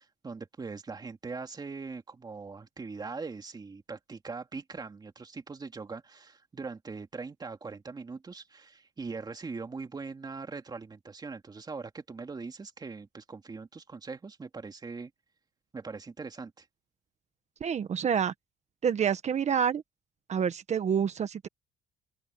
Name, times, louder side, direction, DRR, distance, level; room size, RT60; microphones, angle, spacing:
voice 1, 0.0-15.1 15.7-16.7, right 4 dB, 25° right, 2.8 m, -41 dB
voice 2, 17.6-18.3 18.8-19.8 20.3-21.5, right 7 dB, 40° right, 1.4 m, -27 dB
open air
cardioid pair, 110°, 17 cm